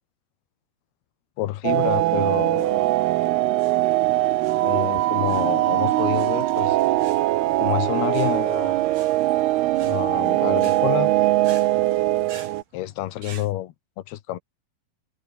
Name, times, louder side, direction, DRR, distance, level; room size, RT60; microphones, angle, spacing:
voice 1, 1.4-2.8 4.6-6.8 7.6-8.8 9.8-11.1 12.7-13.7 14.1-14.4, left 14 dB, 80° left, 3.1 m, -28 dB
sound 1, 1.6-12.6, right 16 dB, 85° right, 2.9 m, -21 dB
sound 2, 2.4-13.5, right 6 dB, 60° right, 5.5 m, -48 dB
sound 3, 6.7-12.3, right 4 dB, 40° right, 5.5 m, -52 dB
omnidirectional pair, 4.5 m